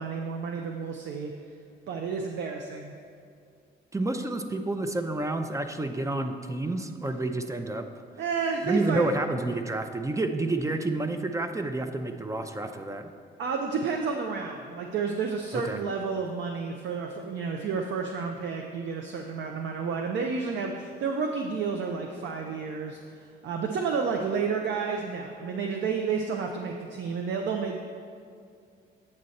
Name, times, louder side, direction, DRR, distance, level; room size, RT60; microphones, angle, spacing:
voice 1, 0.0-1.3 1.9-3.0 8.2-9.1 13.4-27.8, right 5 dB, 65° right, 2 dB, 0.6 m, -31 dB
voice 2, 3.9-7.9 8.6-13.1 15.5-15.8, right 2 dB, 15° right, 7 dB, 0.5 m, -29 dB
8.7 x 6.4 x 4.1 m, 2.3 s
cardioid pair, 90°, 20 cm